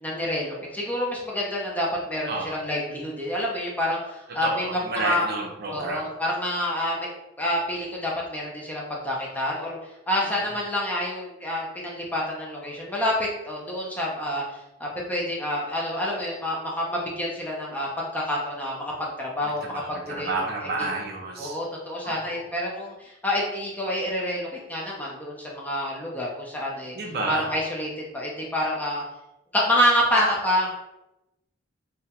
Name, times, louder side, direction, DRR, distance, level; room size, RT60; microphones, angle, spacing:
voice 1, 0.0-4.5 5.0-5.3 5.7-9.8 10.1-14.4 14.8-20.3 20.8-20.9 21.4-26.9 27.3-29.0 29.5-30.7, left 1 dB, 10° left, -4 dB, 0.4 m, -28 dB
voice 2, 2.3-2.6 4.4-6.1 10.2-10.5 19.4-21.6 22.0-22.4 26.9-27.5 30.2-30.4, right 2 dB, 50° right, -1 dB, 0.5 m, -31 dB
2.2 x 2.1 x 2.7 m, 0.92 s
head